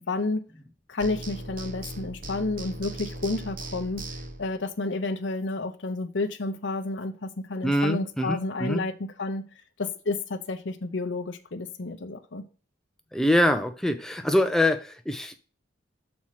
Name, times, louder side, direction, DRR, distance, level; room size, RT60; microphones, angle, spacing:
voice 1, 0.1-0.5 0.9-4.0 4.4-9.4 9.8-12.4, left 3 dB, 70° left, 6 dB, 0.7 m, -30 dB
sound 1, 1.0-4.6, right 2 dB, 45° right, 1.1 m, -38 dB
voice 2, 7.6-8.8 13.1-15.3, left 1 dB, ahead, 7 dB, 0.5 m, -24 dB
6.2 x 4.3 x 5.7 m, 0.37 s
head